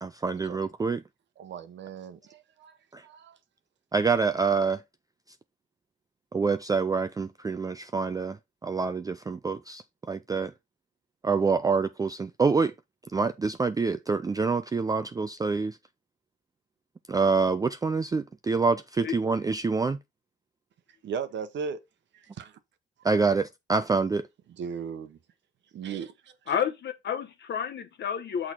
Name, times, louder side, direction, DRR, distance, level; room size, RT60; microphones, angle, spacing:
voice 1, 0.0-1.0 2.9-3.0 3.9-4.8 6.3-10.5 11.2-12.7 13.1-15.8 17.1-20.0 23.0-24.3, right 4 dB, 20° right, 0.4 m, -26 dB
voice 2, 1.4-2.7 3.0-3.4 21.0-21.8 22.1-22.5 24.6-25.2 25.7-26.1, right 6 dB, 65° right, 1.0 m, -36 dB
voice 3, 26.5-28.5, left 8 dB, 60° left, 1.0 m, -30 dB
6.4 x 3.9 x 4.4 m
cardioid pair, 90°, 20 cm